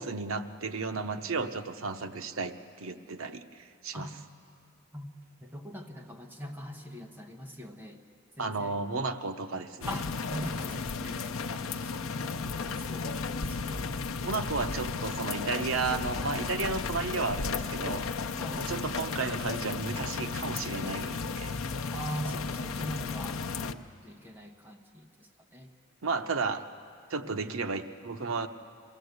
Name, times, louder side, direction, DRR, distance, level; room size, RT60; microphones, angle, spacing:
voice 1, 0.0-4.1 8.4-10.0 14.2-18.1 18.5-21.6 23.6-23.8 26.0-26.6 27.1-28.5, right 4 dB, 80° right, 8 dB, 0.9 m, -33 dB
voice 2, 5.4-8.0 8.4-8.7 9.9-13.1 13.5-13.9 18.4-18.7 21.9-23.7 24.0-25.1 25.5-25.7 27.2-27.3, equal, 10° right, 2 dB, 1.2 m, -41 dB
sound 1, 9.8-23.7, left 4 dB, 80° left, 0.6 m, -34 dB
23.0 x 15.5 x 8.0 m, 2.4 s
head